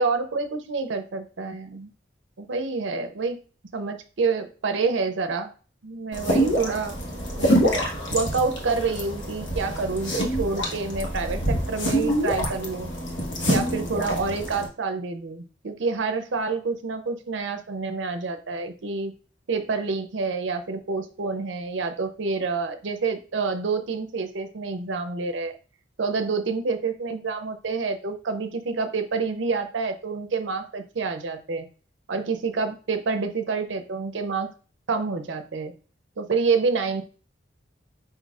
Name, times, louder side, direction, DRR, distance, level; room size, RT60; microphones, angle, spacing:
voice 1, 0.0-1.9 2.4-3.4 3.7-5.5 5.8-6.9 7.4-7.5 8.1-12.9 13.5-19.1 19.5-25.5 26.0-31.6 32.1-34.5 34.9-35.7 36.2-37.0, right 4 dB, 75° right, 7 dB, 0.6 m, -28 dB
sound 1, 6.1-14.7, equal, 70° left, 1.2 m, -26 dB
5.2 x 4.1 x 2.4 m, 0.37 s
head